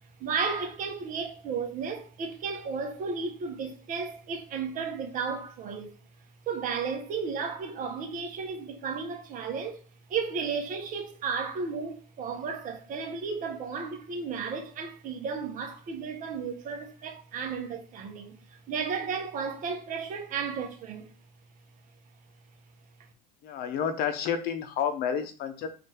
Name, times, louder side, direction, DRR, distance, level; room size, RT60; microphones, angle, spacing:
voice 1, 0.2-5.9 6.5-9.8 10.1-21.1, right 5 dB, 45° right, 1.2 m, -33 dB
voice 2, 23.4-25.7, left 8 dB, 55° left, 0.8 m, -30 dB
4.2 x 2.7 x 3.8 m
supercardioid pair, 130°, 19 cm